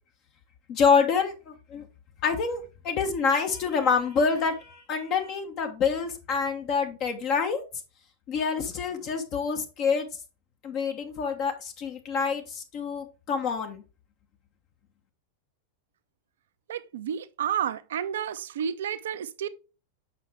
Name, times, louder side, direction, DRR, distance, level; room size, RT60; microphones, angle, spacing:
voice 1, 0.7-1.9 2.2-7.6 8.3-10.1 10.6-13.8, left 5 dB, 40° left, 1.2 m, -27 dB
voice 2, 16.7-19.5, right 9 dB, 60° right, 0.7 m, -31 dB
7.7 x 5.6 x 3.5 m
figure-of-eight pair, 90°, 0 cm